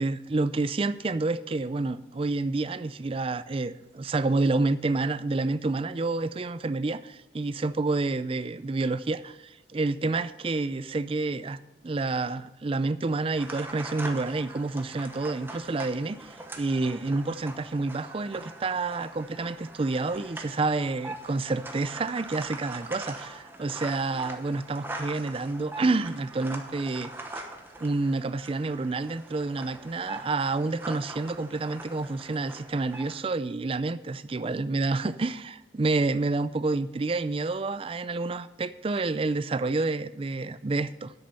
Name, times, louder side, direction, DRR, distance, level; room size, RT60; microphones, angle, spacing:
voice 1, 0.0-11.6 11.8-27.1 27.8-41.1, right 3 dB, 30° right, 14 dB, 0.4 m, -29 dB
sound 1, 13.3-33.2, right 2 dB, 10° right, 1.0 m, -42 dB
10.5 x 8.1 x 5.6 m, 1.0 s
head